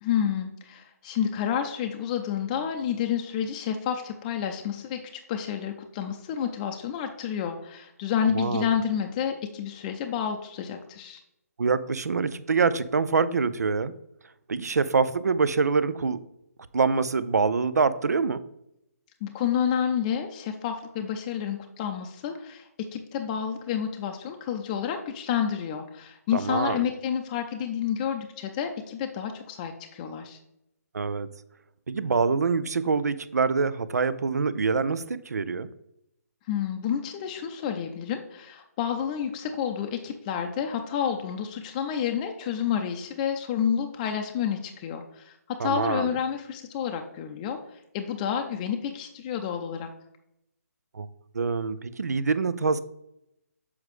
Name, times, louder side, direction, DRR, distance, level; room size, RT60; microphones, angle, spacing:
voice 1, 0.0-5.0 5.3-11.2 19.2-30.4 36.5-47.6 47.9-49.9, left 8 dB, 25° left, 4 dB, 0.5 m, -29 dB
voice 2, 8.3-8.7 11.6-13.9 14.5-16.2 16.7-18.4 26.3-26.8 30.9-31.3 31.9-35.7 45.6-46.2 50.9-51.1 51.3-52.8, right 4 dB, 75° right, 15 dB, 0.5 m, -25 dB
7.2 x 4.8 x 3.1 m, 0.82 s
figure-of-eight pair, 145°, 9 cm